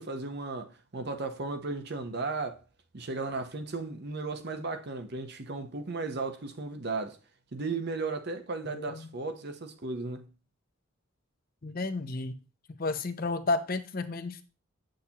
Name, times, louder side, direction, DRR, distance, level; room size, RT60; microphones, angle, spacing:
voice 1, 0.0-2.6 2.9-7.2 7.5-10.3, right 3 dB, 50° right, 0.8 m, -35 dB
voice 2, 8.6-9.1 11.6-12.3 12.8-14.4, left 3 dB, 40° left, 0.6 m, -32 dB
8.3 x 6.5 x 2.9 m
head